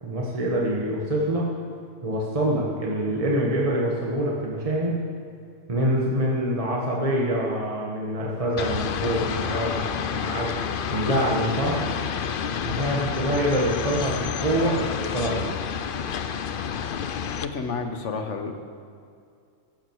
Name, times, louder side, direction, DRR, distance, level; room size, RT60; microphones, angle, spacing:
voice 1, 0.0-1.4 2.0-5.0 5.7-10.5 10.9-11.9 12.6-15.6, right 1 dB, 30° right, -4 dB, 1.6 m, -25 dB
sound 1, 8.6-17.5, left 7 dB, 55° left, 0.7 m, -29 dB
voice 2, 17.4-18.5, left 4 dB, 70° left, 6 dB, 1.5 m, -30 dB
14.5 x 12.5 x 4.8 m, 2.4 s
omnidirectional pair, 1.3 m